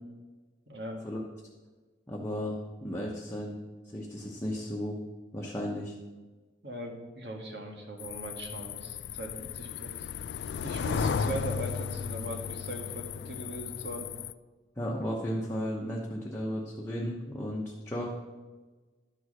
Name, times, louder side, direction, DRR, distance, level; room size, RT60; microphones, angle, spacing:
voice 1, 0.7-1.0 6.6-10.1 10.6-14.1, right 1 dB, 70° right, 1 dB, 1.7 m, -39 dB
voice 2, 2.1-2.5 2.8-3.6 3.8-5.0 5.3-5.9 14.8-18.1, equal, 15° left, -3 dB, 1.0 m, -34 dB
sound 1, 8.0-14.3, left 6 dB, 70° left, 0.3 m, -35 dB
11.5 x 4.7 x 6.4 m, 1.3 s
head